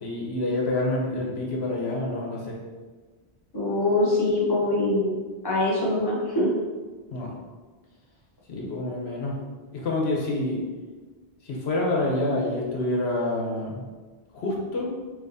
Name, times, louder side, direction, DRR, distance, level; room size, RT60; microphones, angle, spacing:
voice 1, 0.0-2.6 7.1-7.3 8.5-9.4 9.7-10.6 11.4-13.8 14.3-14.9, left 2 dB, 85° left, -2 dB, 1.1 m, -27 dB
voice 2, 3.5-5.2 5.4-6.5, left 2 dB, 25° left, -5 dB, 1.0 m, -23 dB
3.5 x 3.1 x 4.0 m, 1.4 s
omnidirectional pair, 1.0 m